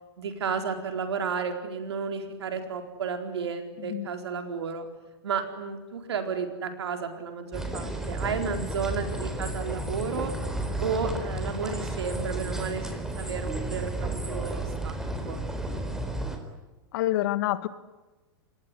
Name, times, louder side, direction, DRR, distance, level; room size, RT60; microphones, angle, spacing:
voice 1, 0.2-4.9 5.2-10.3 10.8-15.0 15.3-15.4, right 5 dB, 85° right, 6 dB, 4.3 m, -32 dB
sound 1, 7.5-16.4, right 2 dB, 5° right, 4.2 m, -32 dB
voice 2, 16.9-17.7, left 15 dB, 60° left, 13 dB, 1.8 m, -27 dB
26.5 x 20.5 x 9.9 m, 1.2 s
hypercardioid pair, 120°, 13 cm